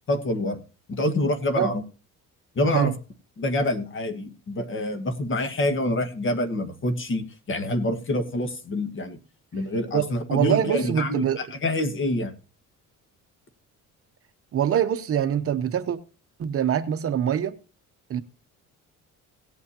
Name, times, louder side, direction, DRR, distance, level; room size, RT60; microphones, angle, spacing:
voice 1, 0.1-0.6 0.9-1.8 2.5-2.9 3.4-9.2 9.5-12.3, left 1 dB, 40° left, 1.5 m, -26 dB
voice 2, 9.9-11.4 14.5-16.0 16.4-17.5 18.1-18.2, right 9 dB, 45° right, 0.8 m, -24 dB
17.5 x 8.4 x 2.8 m
cardioid pair, 135°, 31 cm